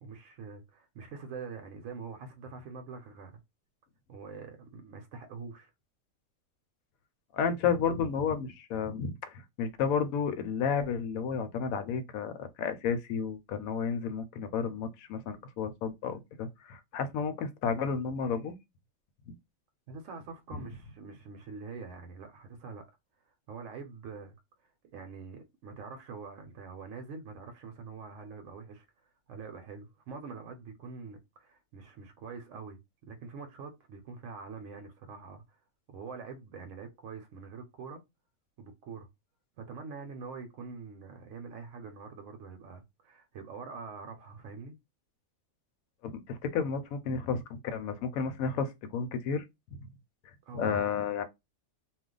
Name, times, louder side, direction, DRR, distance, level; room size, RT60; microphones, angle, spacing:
voice 1, 0.0-3.4 4.1-5.7 19.9-22.8 23.2-24.3 24.6-35.6 35.9-38.0 38.6-39.1 39.6-44.8 50.5-50.9, right 5 dB, 70° right, 0.9 m, -45 dB
voice 2, 7.3-18.5 19.3-19.4 20.5-20.6 46.0-49.4 49.8-49.9 50.5-51.2, left 6 dB, 80° left, 1.0 m, -32 dB
2.4 x 2.2 x 3.7 m
omnidirectional pair, 1.4 m